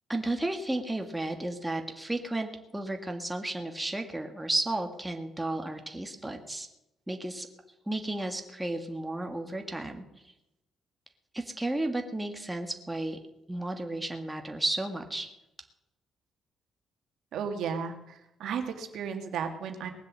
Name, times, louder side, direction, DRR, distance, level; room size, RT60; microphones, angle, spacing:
voice 1, 0.1-6.7 7.1-7.5 7.9-10.0 11.3-13.2 13.5-15.3, right 2 dB, 10° right, 4 dB, 1.8 m, -33 dB
voice 2, 17.3-19.9, right 6 dB, 75° right, 5 dB, 1.9 m, -34 dB
19.5 x 7.6 x 7.5 m, 0.92 s
cardioid pair, 90°, 0 cm